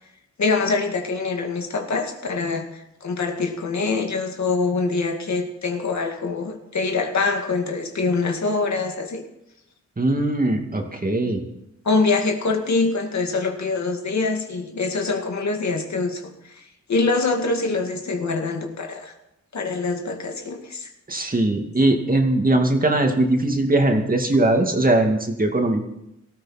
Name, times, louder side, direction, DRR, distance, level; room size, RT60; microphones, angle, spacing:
voice 1, 0.4-9.2 11.8-16.6 16.9-19.1 19.5-20.9, left 3 dB, 65° left, 3 dB, 2.2 m, -24 dB
voice 2, 10.0-11.4 21.1-25.9, right 2 dB, 30° right, 3 dB, 2.4 m, -20 dB
18.5 x 13.5 x 4.3 m, 0.84 s
wide cardioid pair, 90°, 30 cm